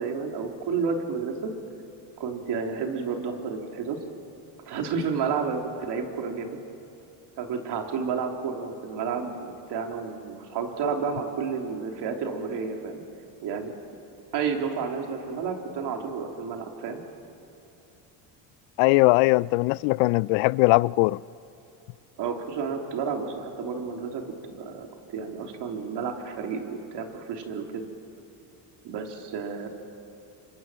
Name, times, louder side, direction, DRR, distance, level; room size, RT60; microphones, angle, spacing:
voice 1, 0.0-1.5 2.2-4.0 4.7-6.6 7.4-13.0 13.4-13.7 14.3-17.0 22.2-27.9 28.8-29.7, right 5 dB, 65° right, 3.5 m, -31 dB
voice 2, 18.8-21.2, left 23 dB, 90° left, 0.5 m, -20 dB
28.5 x 25.0 x 7.5 m
cardioid pair, 105°, 45 cm